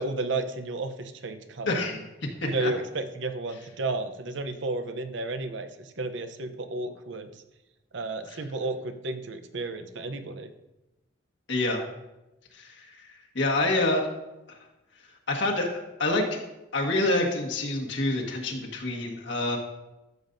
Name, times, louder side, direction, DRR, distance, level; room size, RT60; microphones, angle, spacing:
voice 1, 0.0-2.0 2.4-7.3 7.9-10.5, right 2 dB, 70° right, 8 dB, 0.8 m, -32 dB
voice 2, 1.7-2.0 2.6-2.7 8.3-8.4 11.5-11.8 12.5-13.1 13.3-14.1 15.3-16.4 16.7-19.6, left 2 dB, 70° left, 0 dB, 1.6 m, -27 dB
13.0 x 7.3 x 2.7 m, 0.97 s
head